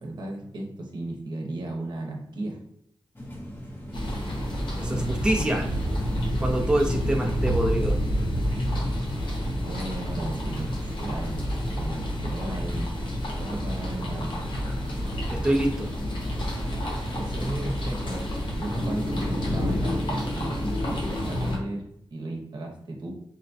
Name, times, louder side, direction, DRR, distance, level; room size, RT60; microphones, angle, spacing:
voice 1, 0.0-2.6 9.6-12.9 13.4-14.4 17.2-18.3 18.5-20.6 20.9-21.8 22.1-23.1, right 1 dB, 65° right, 1 dB, 0.8 m, -35 dB
sound 1, 3.2-20.0, equal, 25° left, 0.8 m, -41 dB
sound 2, 3.9-21.6, equal, 75° left, 0.9 m, -29 dB
voice 2, 4.8-5.7 6.4-8.0 15.3-15.9, right 1 dB, 10° right, 1 dB, 0.5 m, -25 dB
4.0 x 2.2 x 2.6 m, 0.74 s
cardioid pair, 55°, 8 cm